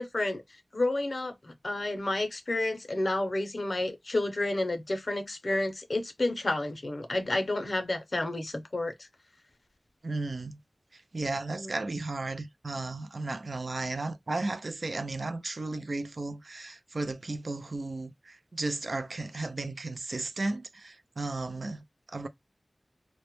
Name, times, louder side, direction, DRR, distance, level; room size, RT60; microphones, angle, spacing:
voice 1, 0.0-9.1 11.5-11.9, left 2 dB, 60° left, 0.5 m, -31 dB
voice 2, 10.0-10.6 10.9-22.3, right 2 dB, 65° right, 0.3 m, -34 dB
2.1 x 2.0 x 2.9 m
wide cardioid pair, 50°, 0 cm